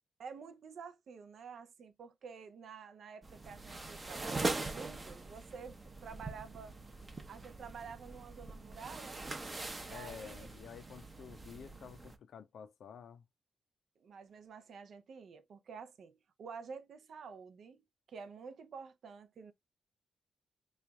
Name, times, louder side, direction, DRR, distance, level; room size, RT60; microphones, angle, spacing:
voice 1, 0.2-6.8 7.3-9.3 9.8-10.5 14.0-17.8 18.1-19.5, right 6 dB, 65° right, 0.6 m, -49 dB
sound 1, 3.2-12.2, right 2 dB, 20° right, 0.6 m, -42 dB
voice 2, 9.9-13.3, left 7 dB, 70° left, 0.5 m, -50 dB
3.1 x 2.3 x 3.8 m
cardioid pair, 125°, 0 cm